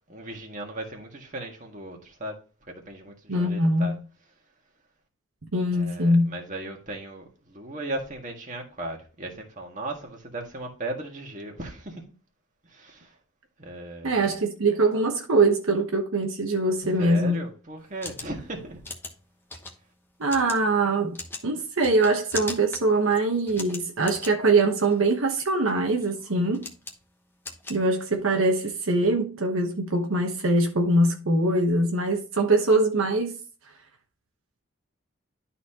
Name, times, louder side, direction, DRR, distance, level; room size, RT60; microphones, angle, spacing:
voice 1, 0.1-2.4 2.7-3.9 5.7-12.0 12.6-13.2 13.6-14.3 17.0-18.8, right 1 dB, 35° right, 1.7 m, -37 dB
voice 2, 3.3-4.0 5.5-6.3 14.0-17.4 20.2-21.2 21.4-26.7 27.7-33.4, right 2 dB, 75° right, 1.0 m, -23 dB
sound 1, 17.8-28.4, left 2 dB, 10° left, 0.9 m, -41 dB
12.0 x 4.2 x 2.8 m
head